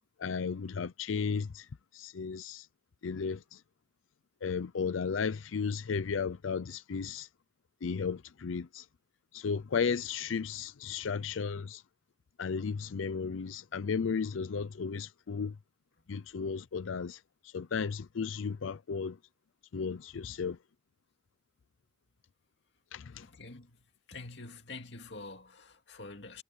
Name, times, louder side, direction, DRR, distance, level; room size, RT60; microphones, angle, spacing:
voice 1, 0.2-1.7 1.9-2.7 3.0-3.6 4.4-7.3 7.8-8.8 9.3-11.8 12.4-15.5 16.1-17.2 17.5-19.2 19.7-20.6 22.9-23.2, left 5 dB, 90° left, 0.5 m, -34 dB
voice 2, 23.2-23.7 24.1-26.4, left 3 dB, 60° left, 2.5 m, -46 dB
head